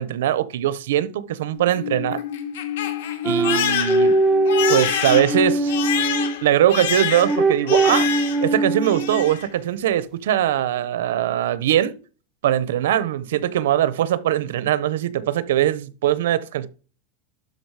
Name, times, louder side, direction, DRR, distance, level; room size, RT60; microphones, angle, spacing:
voice 1, 0.0-2.2 3.2-4.2 4.7-5.7 6.4-8.1 8.4-12.0 12.4-16.7, right 11 dB, 85° right, 0.9 m, -21 dB
Crying sobbing, 1.5-8.5 8.8-9.5, left 9 dB, 80° left, 2.0 m, -27 dB
sound 1, 3.2-6.4 7.1-9.4, right 2 dB, 10° right, 1.1 m, -21 dB
12.0 x 5.3 x 4.8 m
supercardioid pair, 165°, 0 cm